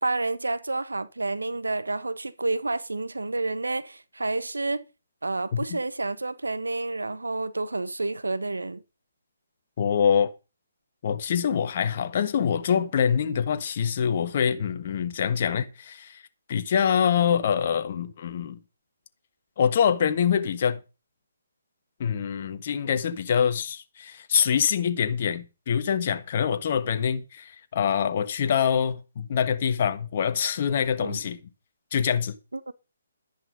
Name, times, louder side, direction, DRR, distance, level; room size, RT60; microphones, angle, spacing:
voice 1, 0.0-4.8 5.2-8.8 31.0-31.2 32.5-32.7, right 2 dB, 85° right, 1.3 m, -29 dB
voice 2, 9.8-10.3 11.0-16.2 16.5-18.6 19.6-20.8 22.0-31.4 31.9-32.3, left 7 dB, 45° left, 1.5 m, -25 dB
11.5 x 10.5 x 5.4 m
figure-of-eight pair, 140°, 0 cm